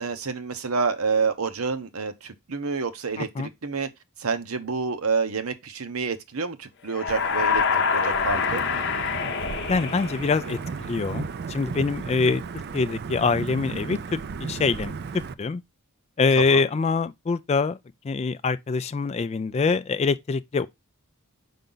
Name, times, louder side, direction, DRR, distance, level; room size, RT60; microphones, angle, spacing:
voice 1, 0.0-3.9 4.2-8.6 16.4-16.6, right 4 dB, 70° right, 0.9 m, -28 dB
voice 2, 3.2-3.5 9.7-12.4 12.7-14.9 15.4-15.6 16.2-17.8 18.0-20.7, left 4 dB, 30° left, 0.3 m, -24 dB
sound 1, 6.9-10.7, left 6 dB, 50° left, 0.7 m, -26 dB
Wind / Thunder / Rain, 7.1-15.3, right 5 dB, 45° right, 0.4 m, -35 dB
5.6 x 5.1 x 3.8 m
head